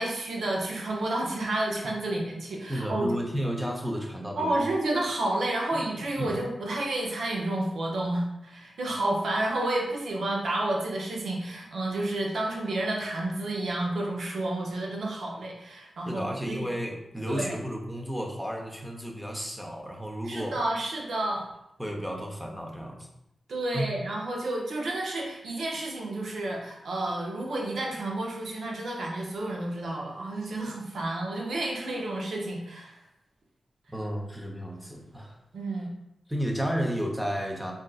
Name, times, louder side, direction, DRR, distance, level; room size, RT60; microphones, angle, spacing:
voice 1, 0.0-3.1 4.4-16.7 17.3-17.6 20.2-21.5 23.5-33.0 35.5-35.9, right 1 dB, 75° right, -2 dB, 0.7 m, -30 dB
voice 2, 2.7-4.7 5.7-5.8 6.2-6.3 16.1-20.6 21.8-23.1 23.7-23.9 33.9-35.4 36.3-37.7, equal, 5° right, 0 dB, 0.7 m, -32 dB
3.5 x 2.6 x 2.4 m, 0.85 s
cardioid pair, 45°, 0 cm